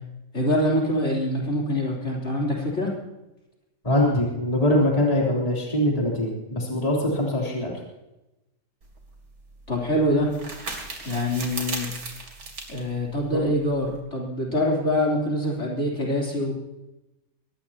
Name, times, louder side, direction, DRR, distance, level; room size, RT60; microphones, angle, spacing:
voice 1, 0.3-2.9 9.7-10.3 11.0-11.9 12.7-16.5, left 1 dB, 45° left, -2 dB, 3.9 m, -24 dB
voice 2, 3.8-7.7 13.3-13.4, left 1 dB, 20° left, -3 dB, 3.5 m, -23 dB
sound 1, 8.8-14.0, right 3 dB, 85° right, 3.4 m, -37 dB
22.5 x 18.5 x 2.9 m, 0.97 s
omnidirectional pair, 1.8 m